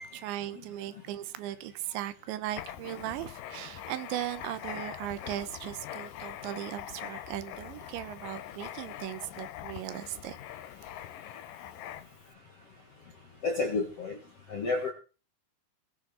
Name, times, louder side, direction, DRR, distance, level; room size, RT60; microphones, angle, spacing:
voice 1, 0.0-10.4, right 13 dB, 80° right, 3.2 m, -38 dB
Writing, 2.5-12.3, left 12 dB, 90° left, 1.9 m, -43 dB
voice 2, 13.4-14.2 14.5-14.9, left 3 dB, 55° left, 1.7 m, -30 dB
21.0 x 8.4 x 4.4 m
omnidirectional pair, 5.4 m